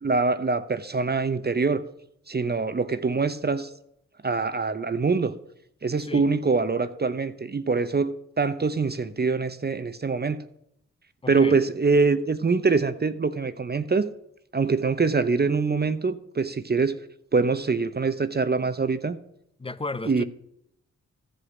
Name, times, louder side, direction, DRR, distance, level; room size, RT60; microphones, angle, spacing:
voice 1, 0.0-1.8 2.3-3.7 4.2-5.3 5.8-10.4 11.3-14.1 14.5-17.0 17.3-19.2 20.1-20.2, right 4 dB, 30° right, 0.8 m, -24 dB
voice 2, 11.2-11.6 19.6-20.2, left 3 dB, 20° left, 0.7 m, -34 dB
14.0 x 5.1 x 7.1 m
supercardioid pair, 40°, 31 cm